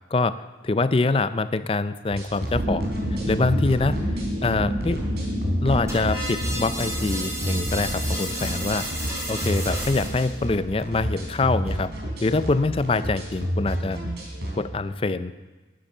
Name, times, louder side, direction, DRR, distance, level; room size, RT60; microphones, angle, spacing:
voice 1, 0.6-2.9 3.3-4.0 4.4-5.0 5.6-8.9 9.3-11.9 12.2-14.0 14.5-15.3, left 3 dB, 30° left, 14 dB, 0.4 m, -24 dB
sound 1, 2.1-14.7, equal, 65° right, 3.8 m, -30 dB
sound 2, 2.5-11.4, equal, 45° right, 1.5 m, -31 dB
sound 3, 5.9-10.3, equal, 15° right, 3.6 m, -32 dB
12.0 x 10.0 x 6.6 m, 1.3 s
head